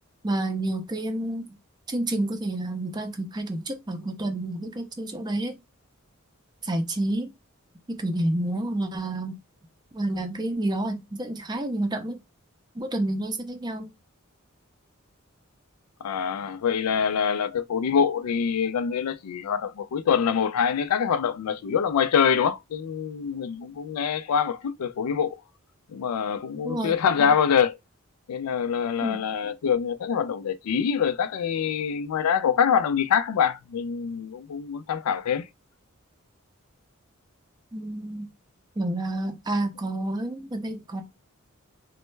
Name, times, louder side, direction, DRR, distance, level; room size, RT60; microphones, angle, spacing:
voice 1, 0.2-1.5 1.9-5.5 6.6-7.3 7.9-9.4 9.9-12.2 12.8-13.9 26.6-26.9 29.0-29.2 37.7-38.3 38.8-41.0, right 1 dB, 20° right, 0.5 m, -29 dB
voice 2, 16.0-25.4 25.9-27.8 28.3-35.5, left 7 dB, 90° left, 0.4 m, -25 dB
3.1 x 2.1 x 3.1 m
head